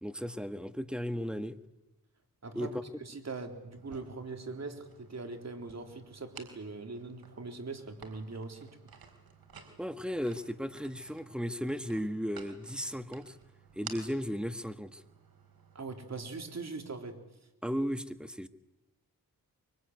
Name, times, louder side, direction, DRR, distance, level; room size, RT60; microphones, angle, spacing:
voice 1, 0.0-1.6 2.5-2.7 9.8-13.3 13.7-15.0 17.6-18.5, equal, ahead, 1.5 m, -35 dB
voice 2, 2.4-8.7 15.7-17.2, right 3 dB, 45° right, 3.8 m, -41 dB
sound 1, 3.8-16.2, right 6 dB, 75° right, 4.3 m, -54 dB
24.0 x 23.5 x 9.5 m
cardioid pair, 75°, 37 cm